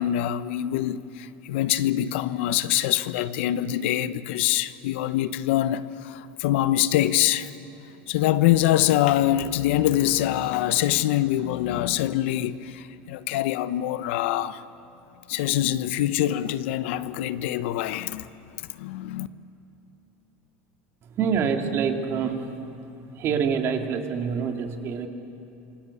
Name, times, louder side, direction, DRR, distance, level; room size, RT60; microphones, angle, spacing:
voice 1, 0.0-7.5 8.1-14.6 15.3-19.3, left 13 dB, 80° left, 0.9 m, -24 dB
voice 2, 21.2-22.5 23.2-25.1, right 6 dB, 45° right, 2.5 m, -26 dB
27.0 x 22.5 x 8.4 m
supercardioid pair, 130°, 6 cm